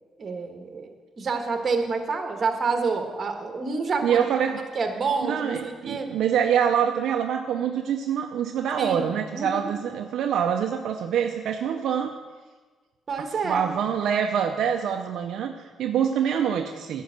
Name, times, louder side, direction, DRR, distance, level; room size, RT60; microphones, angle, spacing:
voice 1, 0.2-4.2 4.7-6.1 8.8-9.0 9.3-9.7 13.1-13.7, right 4 dB, 40° right, 4 dB, 1.5 m, -28 dB
voice 2, 4.0-4.6 5.2-12.1 13.2-17.0, right 8 dB, 75° right, 4 dB, 0.6 m, -25 dB
10.5 x 5.5 x 8.1 m, 1.4 s
cardioid pair, 90°, 0 cm